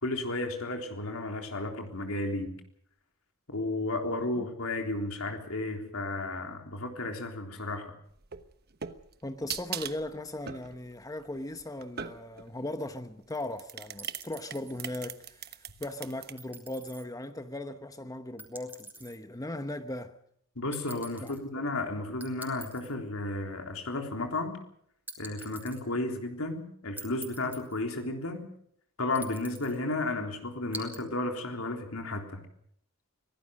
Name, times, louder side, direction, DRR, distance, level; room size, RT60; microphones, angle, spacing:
voice 1, 0.0-2.5 3.5-7.9 20.6-24.6 25.2-28.5 29.0-32.4, left 2 dB, 75° left, 3.7 m, -33 dB
sound 1, 8.2-12.5 13.3-16.3, right 8 dB, 50° right, 1.2 m, -40 dB
voice 2, 9.2-20.1 21.2-21.7, left 1 dB, 15° left, 0.9 m, -38 dB
sound 2, 14.0-15.0 16.4-17.0 18.4-19.2 20.7-21.4 22.2-22.9 25.1-25.8 27.0-27.8 29.2-29.8 30.7-31.0, right 2 dB, 10° right, 4.3 m, -45 dB
24.0 x 17.5 x 6.5 m
head